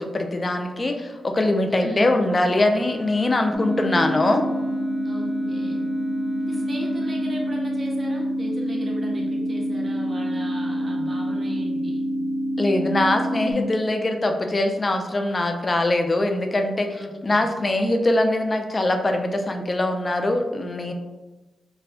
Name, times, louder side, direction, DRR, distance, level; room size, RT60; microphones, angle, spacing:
voice 1, 0.0-4.4 12.6-17.0 17.2-20.9, left 2 dB, 35° left, 5 dB, 0.3 m, -22 dB
voice 2, 1.7-2.2 5.0-5.9 6.4-12.1 16.9-17.4, equal, 40° right, -2 dB, 0.9 m, -36 dB
Wind instrument woodwind instrument, 2.3-7.4, left 3 dB, 90° left, 1.3 m, -40 dB
sound 1, 3.5-13.5, equal, 10° left, 0.7 m, -26 dB
4.1 x 2.2 x 2.6 m, 1.2 s
cardioid pair, 55°, 0 cm